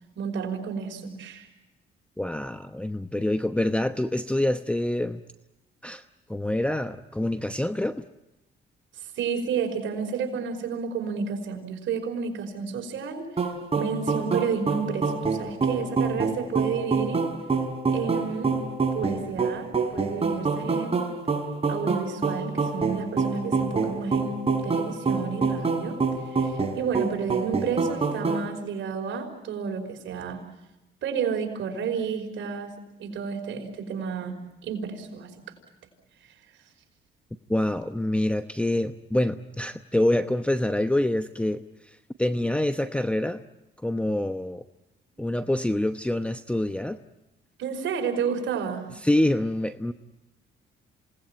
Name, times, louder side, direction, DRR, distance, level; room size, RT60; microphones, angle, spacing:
voice 1, 0.2-1.5 9.2-13.5 13.7-17.2 17.9-18.5 18.9-21.0 21.7-26.0 26.3-30.4 31.0-32.7 33.0-35.3 42.3-42.5 47.6-48.9, right 6 dB, 75° right, 3 dB, 5.5 m, -31 dB
voice 2, 2.2-5.2 5.8-6.0 6.3-8.0 37.5-43.4 43.8-44.6 45.2-47.0 49.0-49.9, left 1 dB, 5° left, 8 dB, 0.9 m, -26 dB
sound 1, 13.4-28.5, right 4 dB, 30° right, 4.4 m, -26 dB
28.0 x 19.0 x 9.0 m, 0.96 s
cardioid pair, 90°, 20 cm